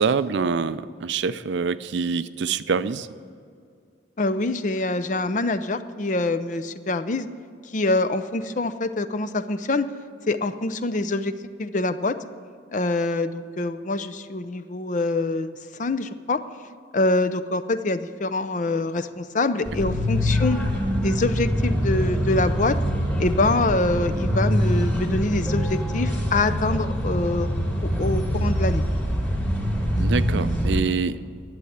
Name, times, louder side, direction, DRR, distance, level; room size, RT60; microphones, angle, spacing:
voice 1, 0.0-3.1 30.0-31.2, right 5 dB, 65° right, 14 dB, 0.4 m, -25 dB
voice 2, 4.2-7.3 7.6-9.9 10.3-11.3 11.6-12.2 12.7-16.4 16.9-20.6 21.0-22.8 23.2-27.5 27.8-28.8, left 2 dB, 40° left, 12 dB, 0.5 m, -25 dB
sound 1, 19.6-30.8, equal, 10° left, 2.7 m, -24 dB
11.5 x 7.8 x 9.8 m, 2.2 s
head